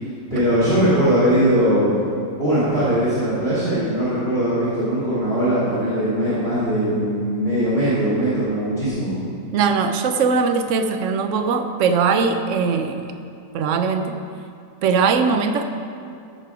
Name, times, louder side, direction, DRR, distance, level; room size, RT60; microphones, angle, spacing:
voice 1, 0.3-1.9 2.4-9.1, equal, 35° right, -11 dB, 2.8 m, -20 dB
voice 2, 9.5-13.0 13.5-14.1 14.8-15.6, right 5 dB, 60° right, 7 dB, 0.8 m, -20 dB
13.5 x 6.8 x 5.0 m, 2.5 s
omnidirectional pair, 1.9 m